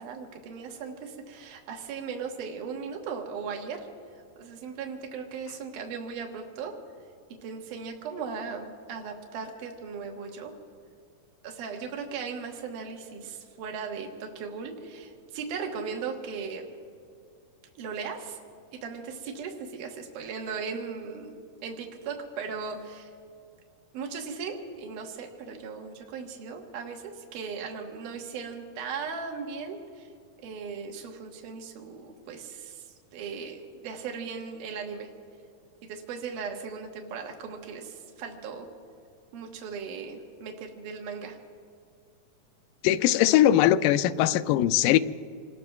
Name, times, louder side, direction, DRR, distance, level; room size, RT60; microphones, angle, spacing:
voice 1, 0.0-3.9 4.4-6.8 7.4-10.5 11.4-16.6 17.8-18.4 18.8-21.3 21.6-23.1 23.9-30.1 30.4-32.9 33.1-35.1 35.8-38.7 39.3-41.4, right 5 dB, 70° right, 2 dB, 2.8 m, -37 dB
voice 2, 42.8-45.0, left 12 dB, 80° left, 11 dB, 2.2 m, -21 dB
27.5 x 20.0 x 2.3 m, 2.4 s
omnidirectional pair, 3.9 m